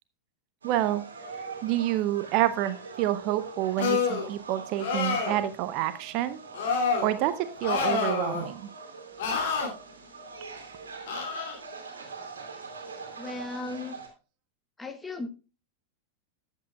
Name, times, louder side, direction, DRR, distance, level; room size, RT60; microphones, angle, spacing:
voice 1, 0.6-1.0 1.6-6.4 7.0-8.7, right 13 dB, 40° right, 13 dB, 0.6 m, -28 dB
sound 1, 0.6-14.1, right 4 dB, 70° right, 2.2 m, -43 dB
sound 2, 3.8-4.3 4.8-5.4 6.5-7.1 7.6-8.5 9.2-9.7 11.1-11.6, left 5 dB, 55° left, 2.6 m, -27 dB
voice 2, 13.2-14.0 14.8-15.3, left 3 dB, 10° left, 8 dB, 1.0 m, -36 dB
13.0 x 8.2 x 2.3 m, 0.32 s
figure-of-eight pair, 90°, 0 cm